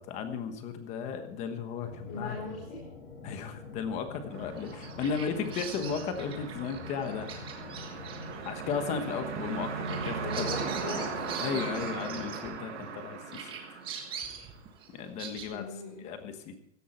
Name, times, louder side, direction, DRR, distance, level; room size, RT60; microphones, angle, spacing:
voice 1, 0.0-2.4 3.2-7.3 8.4-10.5 11.4-13.8 14.1-14.3 14.9-15.7 16.0-16.5, left 6 dB, 20° left, 8 dB, 1.2 m, -35 dB
sound 1, 1.8-12.3, left 4 dB, 55° left, 8.0 m, -47 dB
voice 2, 2.1-2.8 10.2-11.0 15.5-16.0, left 3 dB, 35° left, -4 dB, 4.8 m, -39 dB
sound 2, 4.3-14.5, right 5 dB, 80° right, 5.3 m, -38 dB
Bird vocalization bird call bird song, 4.6-13.0 13.3-15.5, right 7 dB, 15° right, 1.5 m, -43 dB
16.5 x 13.0 x 4.5 m, 0.74 s
supercardioid pair, 175°, 35 cm